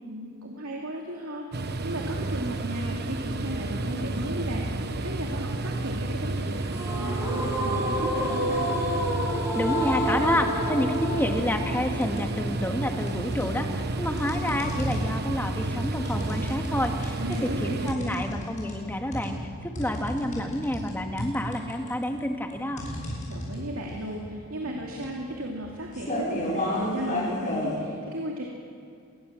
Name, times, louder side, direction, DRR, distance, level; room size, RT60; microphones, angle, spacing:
voice 1, 0.0-8.7 17.2-18.2 23.3-28.4, right 1 dB, 75° right, 0 dB, 2.6 m, -35 dB
sound 1, 1.5-17.9, right 2 dB, 50° right, 1.1 m, -31 dB
sound 2, 6.7-13.7, equal, 10° right, 7.2 m, -30 dB
voice 2, 9.6-17.2 17.6-22.8, left 1 dB, 10° left, 4 dB, 1.8 m, -29 dB
sound 3, 10.9-11.2 11.6-12.5 13.1-27.8, left 1 dB, 35° left, 7.2 m, -34 dB
26.0 x 21.0 x 7.5 m, 2.3 s
head